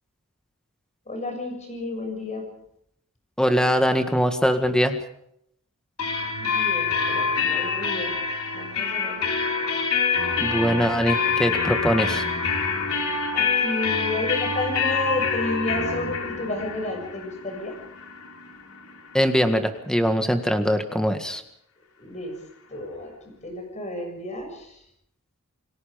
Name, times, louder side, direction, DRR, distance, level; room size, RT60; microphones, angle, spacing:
voice 1, 1.1-2.4 6.4-8.1 8.5-9.2 13.3-17.7 22.0-22.4 22.7-23.1 23.4-24.8, left 2 dB, 30° left, 4 dB, 7.0 m, -31 dB
voice 2, 3.4-5.0 10.4-12.2 19.1-21.4, equal, 5° left, 7 dB, 1.8 m, -22 dB
sound 1, 6.0-19.6, left 5 dB, 70° left, 4.3 m, -26 dB
29.0 x 19.5 x 5.2 m, 0.74 s
head